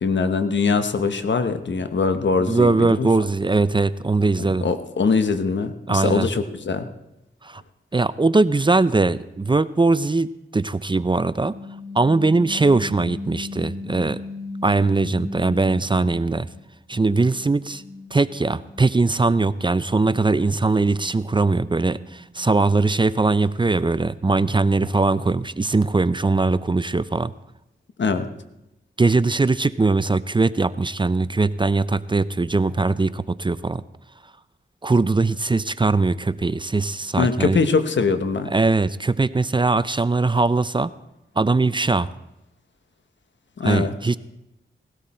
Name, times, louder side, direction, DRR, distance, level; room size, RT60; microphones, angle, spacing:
voice 1, 0.0-3.1 4.4-6.9 28.0-28.3 37.2-38.5 43.6-43.9, left 4 dB, 70° left, 9 dB, 1.2 m, -22 dB
voice 2, 2.4-4.6 5.9-6.3 7.4-7.6 7.9-11.5 11.9-14.2 14.6-16.5 16.9-17.8 18.1-27.3 29.0-33.8 34.8-37.6 38.5-40.9 41.4-42.1 43.6-44.2, right 3 dB, 25° right, 16 dB, 0.5 m, -20 dB
sound 1, 11.3-16.6 16.9-23.1, left 3 dB, 55° right, 2.6 m, -38 dB
18.0 x 13.0 x 4.3 m, 0.90 s
cardioid pair, 50°, 20 cm